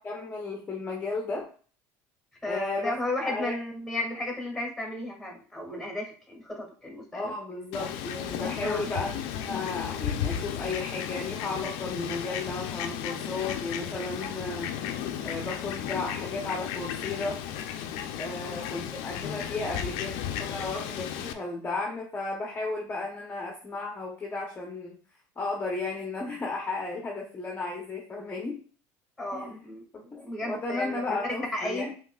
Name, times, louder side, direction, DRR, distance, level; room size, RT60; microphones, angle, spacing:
voice 1, 0.0-1.5 2.4-2.9 3.2-3.6 7.1-9.2 9.4-14.7 15.2-17.4 18.1-20.1 20.4-25.0 25.4-28.6 29.3-29.7 30.1-31.9, left 3 dB, 20° left, 0 dB, 0.8 m, -34 dB
voice 2, 2.4-7.3 8.6-8.9 18.3-18.6 29.2-31.2 31.5-31.9, left 1 dB, ahead, 0 dB, 1.9 m, -34 dB
Fowl, 7.7-21.3, left 9 dB, 75° left, 0.5 m, -34 dB
5.5 x 3.1 x 2.3 m, 0.41 s
supercardioid pair, 110°, 8 cm